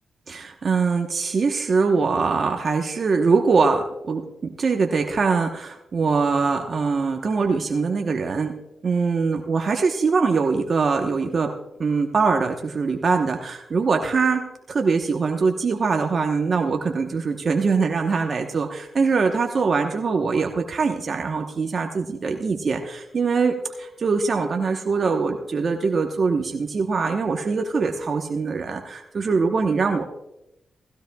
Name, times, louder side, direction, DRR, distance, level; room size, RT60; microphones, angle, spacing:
voice 1, 0.3-4.2 4.6-8.5 8.8-11.5 11.8-14.4 14.7-30.0, right 4 dB, 55° right, 3 dB, 1.0 m, -22 dB
17.0 x 15.5 x 2.3 m, 0.88 s
cardioid pair, 65°, 0 cm